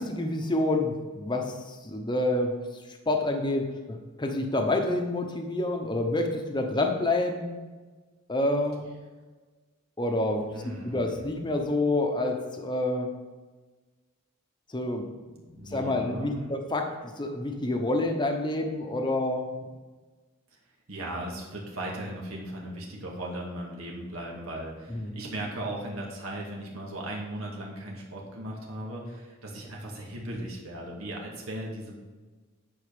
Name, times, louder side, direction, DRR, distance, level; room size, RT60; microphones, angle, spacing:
voice 1, 0.0-2.5 3.1-7.6 8.3-8.9 10.0-10.5 10.8-13.1 14.7-15.1 15.4-19.5 24.9-25.2, left 2 dB, 20° left, 3 dB, 0.9 m, -28 dB
voice 2, 10.5-11.2 15.6-16.6 20.9-32.0, right 1 dB, 80° right, -2 dB, 2.0 m, -37 dB
9.9 x 5.0 x 5.1 m, 1.3 s
head